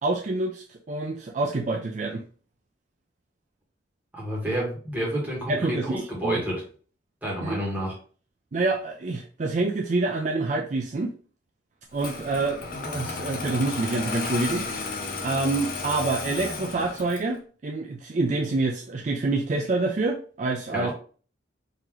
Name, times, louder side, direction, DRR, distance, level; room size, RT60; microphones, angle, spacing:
voice 1, 0.0-2.2 5.5-6.4 7.4-7.6 8.5-11.1 11.9-14.9 15.2-20.9, right 3 dB, 40° right, 1 dB, 0.4 m, -27 dB
voice 2, 4.1-6.6 7.2-7.9 20.7-20.9, right 1 dB, 10° right, -4 dB, 1.4 m, -29 dB
Engine starting, 12.0-17.4, left 4 dB, 50° left, 0.6 m, -33 dB
3.8 x 2.8 x 3.0 m, 0.41 s
head